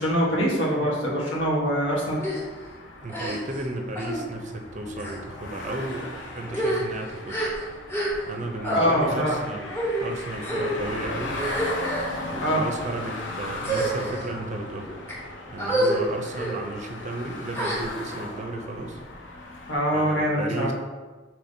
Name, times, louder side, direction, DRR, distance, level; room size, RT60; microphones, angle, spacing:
voice 1, 0.0-2.2 8.7-9.3 12.4-12.6 19.7-20.7, equal, 85° left, -4 dB, 1.1 m, -24 dB
sound 1, 2.0-19.7, left 2 dB, 70° left, 0.6 m, -37 dB
sound 2, 2.2-2.4 3.1-3.6 3.9-4.2 4.9-5.2 5.9-6.1 6.4-8.4 8.6-8.9 9.7-10.0 10.4-10.8 11.3-12.2 12.8-13.1 13.6-14.3 14.9-15.1 15.6-16.0 16.3-16.5 17.5-18.2, right 1 dB, 15° left, 0.8 m, -28 dB
voice 2, 3.0-7.4 8.3-9.7 10.0-11.4 12.3-14.9 15.5-19.0 19.9-20.7, right 2 dB, 40° right, 4 dB, 0.4 m, -34 dB
5.0 x 3.0 x 2.6 m, 1.3 s
head